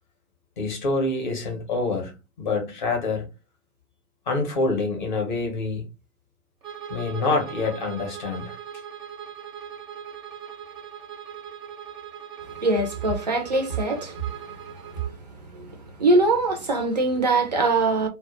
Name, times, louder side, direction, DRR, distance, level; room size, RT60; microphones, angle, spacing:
voice 1, 0.6-2.1 2.4-3.3 4.3-5.9 6.9-8.6, left 3 dB, 35° left, 0.6 m, -26 dB
Bowed string instrument, 6.6-15.2, right 8 dB, 85° right, 0.7 m, -40 dB
voice 2, 12.6-14.2 15.5-15.7 16.0-18.1, right 2 dB, 30° right, 0.4 m, -22 dB
2.1 x 2.1 x 2.8 m
hypercardioid pair, 140°, 45 cm